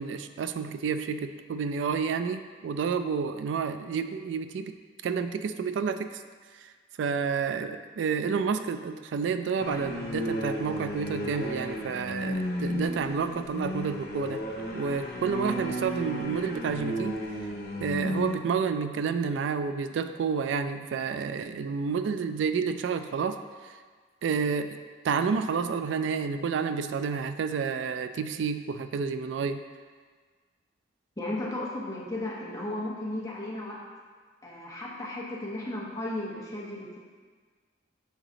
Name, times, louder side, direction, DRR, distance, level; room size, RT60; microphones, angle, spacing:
voice 1, 0.0-4.8 5.0-6.2 6.5-6.7 7.0-14.4 14.7-17.2 17.8-23.8 24.2-24.8 25.0-29.6, right 6 dB, 85° right, 10 dB, 0.3 m, -30 dB
sound 1, 9.6-18.4, equal, 55° left, 0.7 m, -33 dB
voice 2, 31.2-33.8 34.4-37.0, left 1 dB, 20° left, -5 dB, 1.0 m, -35 dB
6.5 x 3.9 x 3.8 m, 1.5 s
head